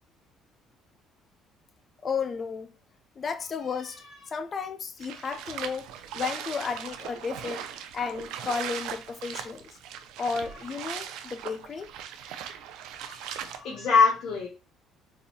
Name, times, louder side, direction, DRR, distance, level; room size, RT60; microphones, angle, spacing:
voice 1, 2.0-2.7 3.2-7.6 7.9-9.8 10.2-11.9, left 5 dB, 35° left, 0.4 m, -33 dB
sound 1, 5.0-13.6, right 9 dB, 85° right, 0.4 m, -39 dB
voice 2, 13.1-14.5, left 5 dB, 70° left, 0.9 m, -24 dB
4.0 x 2.6 x 2.6 m
cardioid pair, 125°, 0 cm